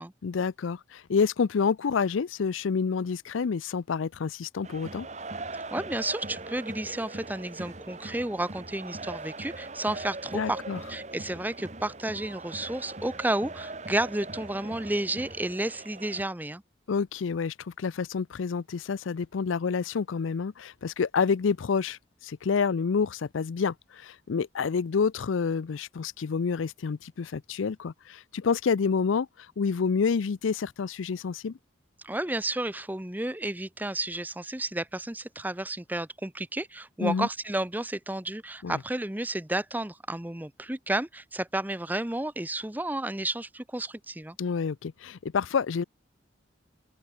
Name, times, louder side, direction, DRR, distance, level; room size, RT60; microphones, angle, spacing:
voice 1, 0.2-5.1 10.3-10.8 16.9-22.0 22.2-31.6 37.0-37.3 38.6-38.8 44.4-45.8, left 5 dB, 90° left, 0.5 m, -28 dB
sound 1, 4.6-16.2, right 2 dB, 35° right, 1.5 m, -41 dB
voice 2, 5.5-10.6 10.9-16.6 32.0-44.4, right 1 dB, 10° right, 0.7 m, -32 dB
open air
head